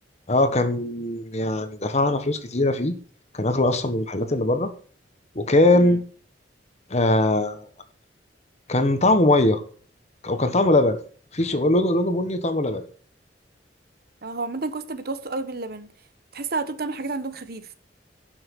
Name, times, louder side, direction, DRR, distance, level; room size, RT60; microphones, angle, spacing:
voice 1, 0.3-2.9 3.3-4.7 5.3-6.0 6.9-7.7 8.7-9.6 10.2-11.0 11.3-12.8, left 2 dB, 40° left, 1.5 m, -21 dB
voice 2, 14.2-15.9 16.3-17.7, right 3 dB, 60° right, 1.2 m, -30 dB
11.0 x 6.2 x 6.1 m
head